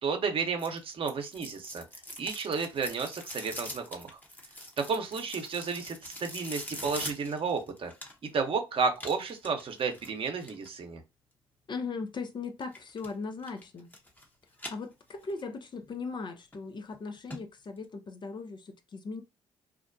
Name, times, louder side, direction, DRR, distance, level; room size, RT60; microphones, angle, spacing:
voice 1, 0.0-1.8 2.2-4.2 4.8-7.9 8.2-11.0, right 5 dB, 50° right, 0.8 m, -32 dB
sound 1, 0.6-8.4 9.0-10.7 12.6-13.1 13.4-14.3 14.5-15.4 15.8-15.9 16.5-16.6 16.9-17.0 17.3-17.4 17.8-17.9, left 1 dB, 15° left, 0.9 m, -43 dB
voice 2, 11.7-13.9 14.7-19.2, left 4 dB, 40° left, 0.6 m, -38 dB
2.5 x 2.1 x 2.6 m
hypercardioid pair, 55°, 12 cm